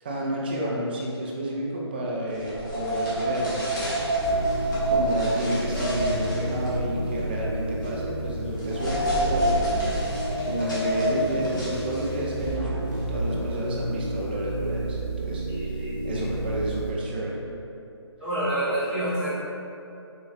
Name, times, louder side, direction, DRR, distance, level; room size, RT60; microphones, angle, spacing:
voice 1, 0.0-4.1 4.9-10.0 10.4-17.4, right 1 dB, 20° right, -3 dB, 0.4 m, -31 dB
sound 1, 2.4-12.3, right 1 dB, 45° left, 1.2 m, -28 dB
sound 2, 4.2-16.9, right 1 dB, 45° right, 0.9 m, -32 dB
voice 2, 15.5-16.2 18.2-19.3, right 1 dB, 5° left, -16 dB, 1.2 m, -28 dB
4.1 x 3.0 x 2.4 m, 2.7 s
figure-of-eight pair, 155°, 15 cm